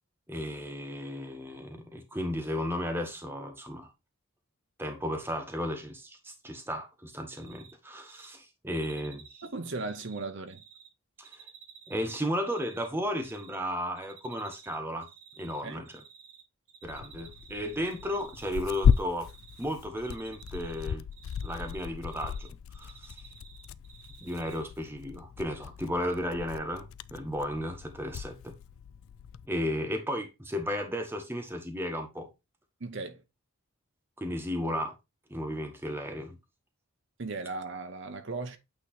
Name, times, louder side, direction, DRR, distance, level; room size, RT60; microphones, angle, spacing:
voice 1, 0.3-3.9 4.8-9.2 11.2-11.5 11.9-15.1 15.4-15.9 16.8-19.3 19.6-21.0 21.4-23.1 24.2-28.5 29.5-32.3 34.2-34.9 35.3-36.4, equal, 10° right, 1.1 m, -34 dB
Cricket, 7.3-7.7 8.0-8.3 8.7-10.9 11.2-12.9 13.2-13.6 14.0-14.8 15.0-16.4 16.7-19.0 19.2-19.6 20.0-22.5 22.7-24.6, right 7 dB, 75° right, 1.7 m, -53 dB
voice 2, 9.4-10.6 15.6-15.8 32.8-33.2 37.2-38.6, right 3 dB, 55° right, 0.8 m, -37 dB
Tearing, 16.8-29.5, left 7 dB, 70° left, 0.3 m, -34 dB
8.8 x 3.1 x 4.2 m
head